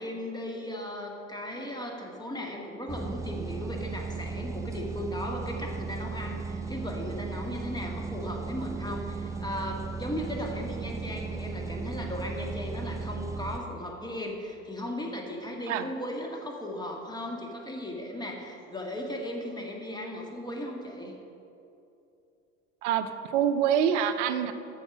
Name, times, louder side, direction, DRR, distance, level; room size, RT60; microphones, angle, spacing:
voice 1, 0.0-21.1, left 1 dB, 10° left, 1 dB, 1.8 m, -37 dB
sound 1, 2.9-13.6, right 4 dB, 10° right, 0.3 m, -36 dB
voice 2, 22.8-24.5, right 8 dB, 65° right, 10 dB, 0.7 m, -26 dB
13.0 x 5.0 x 6.1 m, 2.7 s
figure-of-eight pair, 60°, 40 cm